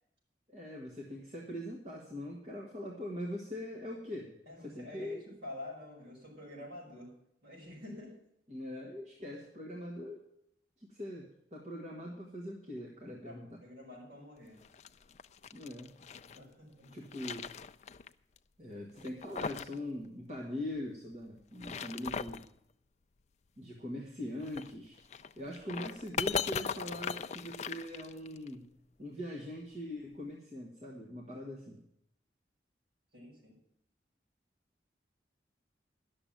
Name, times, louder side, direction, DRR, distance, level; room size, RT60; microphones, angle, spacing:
voice 1, 0.5-4.3 4.6-5.2 8.5-10.2 10.8-13.6 15.5-15.9 16.9-17.5 18.6-22.4 23.6-25.0 25.4-28.7 29.0-31.8, left 1 dB, 40° right, -2 dB, 1.7 m, -42 dB
voice 2, 4.5-7.1 7.4-8.1 13.2-14.6 16.2-17.0 33.1-33.5, left 1 dB, 65° right, -3 dB, 6.2 m, -48 dB
sound 1, 14.6-16.4 16.8-18.1 18.4-18.5 19.0-19.8 20.0-20.1 21.4-22.5 24.4-28.5, left 6 dB, 40° left, 0.4 m, -39 dB
11.0 x 7.0 x 8.9 m, 0.76 s
head